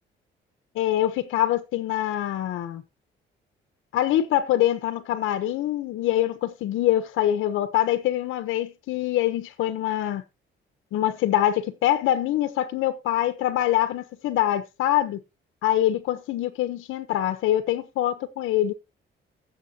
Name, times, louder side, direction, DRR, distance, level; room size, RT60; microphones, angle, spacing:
voice 1, 0.7-2.8 3.9-10.2 10.9-15.2 15.6-18.7, left 13 dB, 90° left, 1.1 m, -24 dB
15.5 x 7.5 x 2.9 m
cardioid pair, 90°, 20 cm